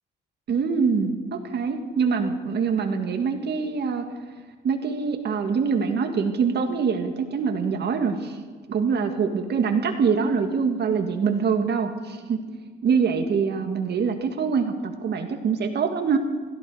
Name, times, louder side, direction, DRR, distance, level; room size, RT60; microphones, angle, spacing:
voice 1, 0.5-4.0 4.6-8.4 8.7-12.4 12.8-16.2, right 5 dB, 60° right, 5 dB, 1.9 m, -24 dB
16.0 x 14.0 x 4.9 m, 1.5 s
cardioid pair, 90°, 20 cm